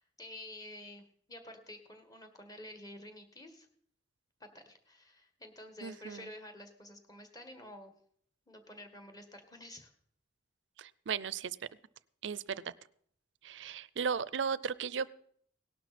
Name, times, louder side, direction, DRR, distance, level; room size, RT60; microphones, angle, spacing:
voice 1, 0.0-3.7 4.4-7.9 8.5-9.9, left 1 dB, 20° left, 6 dB, 1.6 m, -50 dB
voice 2, 5.8-6.3 10.8-11.6 12.2-12.7 13.4-15.1, right 6 dB, 85° right, 19 dB, 0.5 m, -36 dB
18.0 x 12.0 x 4.3 m, 0.64 s
head